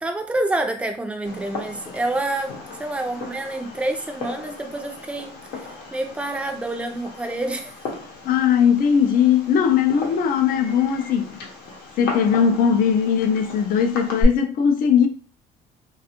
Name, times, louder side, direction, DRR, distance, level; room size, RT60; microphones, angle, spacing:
voice 1, 0.0-7.8, right 2 dB, 5° right, 0.4 m, -28 dB
Fireworks, 1.2-14.2, left 2 dB, 85° left, 0.8 m, -35 dB
voice 2, 8.2-11.4 12.0-15.1, left 7 dB, 60° left, 0.4 m, -19 dB
2.4 x 2.3 x 2.8 m
cardioid pair, 110°, 17 cm